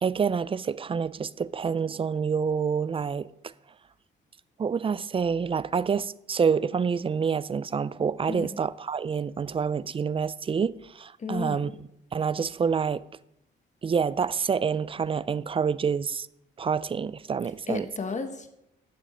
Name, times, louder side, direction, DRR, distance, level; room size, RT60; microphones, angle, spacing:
voice 1, 0.0-3.3 4.6-11.7 12.1-13.0 13.8-16.3 16.6-17.9, right 6 dB, 30° right, 0.4 m, -27 dB
voice 2, 11.2-11.8 17.7-18.5, left 4 dB, 35° left, 1.3 m, -33 dB
10.0 x 7.1 x 5.2 m
cardioid pair, 90°, 20 cm